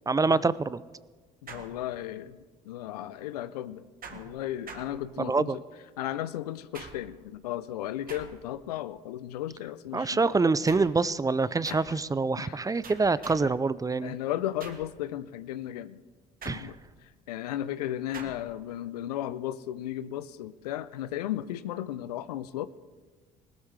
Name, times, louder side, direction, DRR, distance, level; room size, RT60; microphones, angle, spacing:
voice 1, 0.1-0.8 5.2-5.6 9.9-14.1 16.5-16.7, right 3 dB, 20° right, 18 dB, 0.5 m, -26 dB
voice 2, 1.4-3.8 4.1-5.6 6.0-10.3 11.7-12.0 12.4-12.6 13.4-13.6 14.0-16.0 16.4-16.7 17.3-22.7, left 12 dB, 85° left, 15 dB, 0.5 m, -35 dB
sound 1, 1.5-2.3 4.0-5.5 6.7-7.3 8.1-8.7 10.7-11.1 11.6-12.1 12.8-13.6 14.6-15.0 16.4-17.0 18.1-18.6, right 5 dB, 45° right, 1.6 m, -46 dB
19.5 x 12.5 x 3.3 m, 1.3 s
hypercardioid pair, 55°, 20 cm